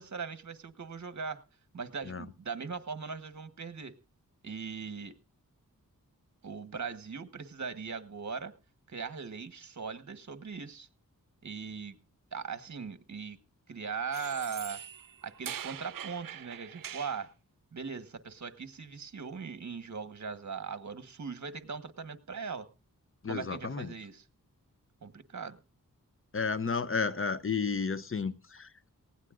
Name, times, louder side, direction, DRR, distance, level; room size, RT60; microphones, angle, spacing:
voice 1, 0.0-1.4 1.7-3.9 4.4-5.1 6.4-8.5 8.9-10.9 11.4-12.0 12.3-13.4 13.7-14.8 15.2-17.3 17.7-22.7 23.3-24.3 25.0-25.6, right 5 dB, 55° right, 1.3 m, -39 dB
sound 1, 14.1-17.2, right 9 dB, 75° right, 0.6 m, -43 dB
voice 2, 23.2-23.9 26.3-28.7, left 5 dB, 40° left, 0.8 m, -32 dB
19.0 x 16.5 x 2.5 m
wide cardioid pair, 65°, 34 cm